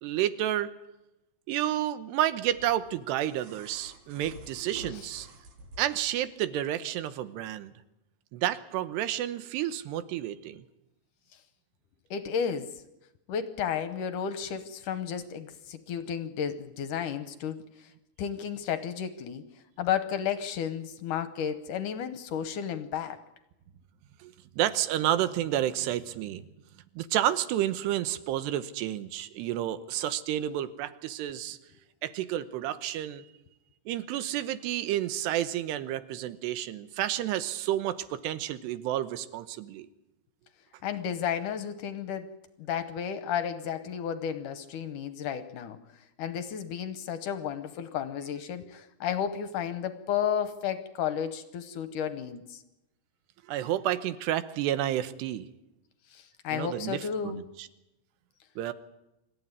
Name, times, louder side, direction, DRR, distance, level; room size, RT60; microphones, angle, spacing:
voice 1, 0.0-0.7 1.5-5.3 5.8-7.7 8.3-10.6 24.2-26.5 27.0-31.6 32.0-33.2 33.9-39.9 53.5-55.5 56.5-57.7 58.6-58.7, right 12 dB, 85° right, 12 dB, 3.1 m, -30 dB
sound 1, 2.4-6.2 7.5-7.6, right 2 dB, 60° right, 4.0 m, -48 dB
voice 2, 12.1-12.7 13.3-17.9 18.2-19.4 19.8-23.2 40.8-42.3 42.6-45.8 46.2-52.6 56.1-57.4, left 8 dB, 70° left, 10 dB, 2.0 m, -32 dB
26.0 x 14.5 x 9.7 m, 0.93 s
omnidirectional pair, 4.8 m